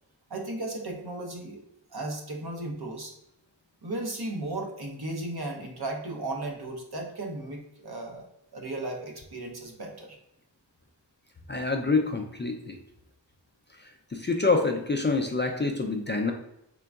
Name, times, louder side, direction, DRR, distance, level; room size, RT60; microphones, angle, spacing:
voice 1, 0.3-1.6 1.9-3.1 3.8-8.3 8.5-10.2, right 2 dB, 60° right, 1 dB, 0.8 m, -35 dB
voice 2, 11.5-12.8 14.1-16.3, left 3 dB, 25° left, 3 dB, 0.4 m, -26 dB
3.8 x 3.3 x 2.3 m, 0.82 s
wide cardioid pair, 45°, 44 cm